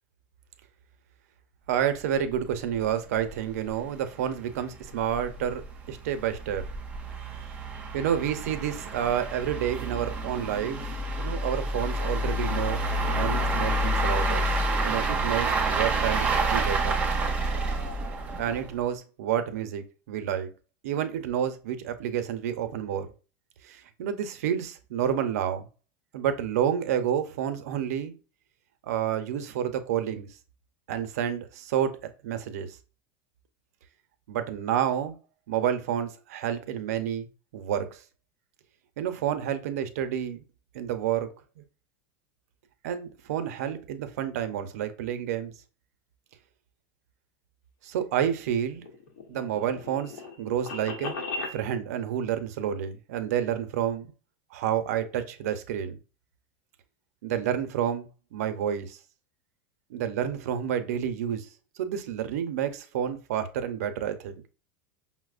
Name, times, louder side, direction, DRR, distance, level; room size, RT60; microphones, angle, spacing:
voice 1, 1.7-5.6 5.9-6.6 7.3-14.4 14.8-16.9 18.4-20.5 20.8-23.1 23.6-25.7 26.1-28.1 28.8-30.3 30.9-32.7 34.3-35.1 35.5-37.3 37.5-38.0 39.0-40.4 40.7-41.3 41.6-41.7 42.8-45.5 47.8-48.9 49.3-51.2 51.5-54.1 54.5-56.0 57.2-59.0 59.9-61.5 61.8-64.4, right 9 dB, 80° right, 0.6 m, -29 dB
sound 1, 2.4-2.5 2.7-2.8 3.3-3.4 3.7-3.8 4.4-18.8, right 2 dB, 15° right, 0.6 m, -28 dB
sound 2, 48.5-51.6, left 3 dB, 80° left, 0.9 m, -37 dB
5.6 x 2.0 x 2.4 m
supercardioid pair, 175°, 8 cm